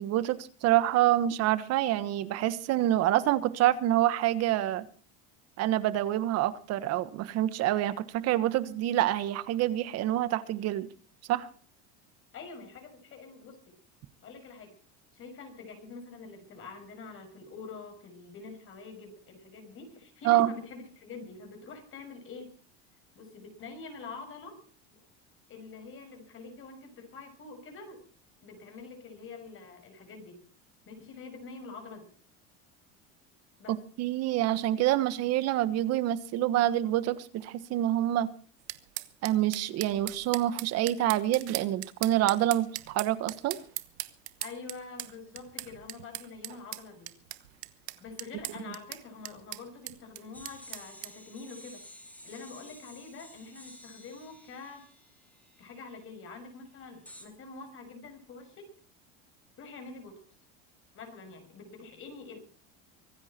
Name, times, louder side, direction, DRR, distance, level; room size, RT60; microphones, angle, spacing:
voice 1, 0.0-4.9 5.6-10.9 11.3-11.5 20.2-20.5 33.7-38.3 39.2-43.6, right 13 dB, 55° right, 14 dB, 1.4 m, -27 dB
voice 2, 12.3-13.7 14.2-14.7 15.1-22.6 23.1-24.6 24.9-25.0 25.5-28.0 28.4-30.4 30.9-32.1 33.6-33.7 44.4-47.1 48.0-51.8 52.2-54.8 55.6-58.7 59.6-60.2 60.9-62.4, left 4 dB, 40° left, 6 dB, 6.1 m, -46 dB
sound 1, 38.7-51.1, right 18 dB, 85° right, 1.2 m, -40 dB
sound 2, 50.3-56.0 57.1-57.3, left 1 dB, 5° left, 4.5 m, -52 dB
24.5 x 10.5 x 4.4 m, 0.42 s
supercardioid pair, 110°, 31 cm